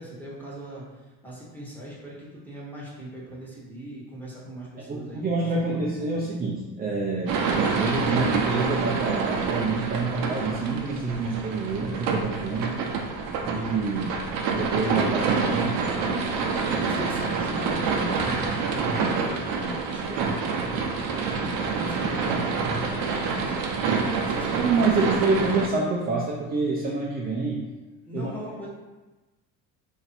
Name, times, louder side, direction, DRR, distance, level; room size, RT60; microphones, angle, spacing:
voice 1, 0.0-5.2 5.7-6.2 16.4-20.9 21.4-25.2 28.0-28.7, left 1 dB, 5° left, -6 dB, 1.1 m, -40 dB
voice 2, 4.9-7.4 7.8-12.8 13.4-14.2 14.5-15.8 16.5-16.7 24.6-27.6 28.1-28.3, right 3 dB, 25° right, -4 dB, 0.5 m, -27 dB
sound 1, 7.3-25.7, right 5 dB, 65° right, 0.7 m, -27 dB
3.2 x 2.7 x 4.1 m, 1.2 s
cardioid pair, 125°, 36 cm